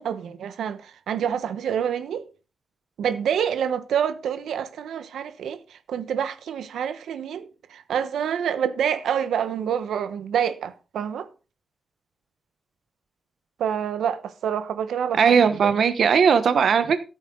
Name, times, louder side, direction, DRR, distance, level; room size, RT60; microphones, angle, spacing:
voice 1, 0.0-2.3 3.0-11.3 13.6-15.8, right 8 dB, 85° right, 1.1 m, -27 dB
voice 2, 15.2-17.0, right 6 dB, 55° right, 1.0 m, -18 dB
14.0 x 8.3 x 3.9 m
wide cardioid pair, 160°, 0 cm